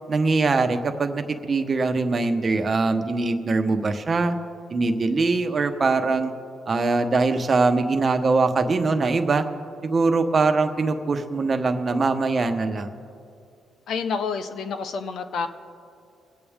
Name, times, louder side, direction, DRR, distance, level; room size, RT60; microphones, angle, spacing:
voice 1, 0.1-4.4 4.7-6.3 6.7-9.4 9.8-12.9, right 3 dB, 35° right, 7 dB, 1.1 m, -22 dB
voice 2, 13.9-15.5, left 5 dB, 70° left, 9 dB, 0.9 m, -28 dB
24.5 x 8.5 x 3.6 m, 2.4 s
cardioid pair, 90°, 0 cm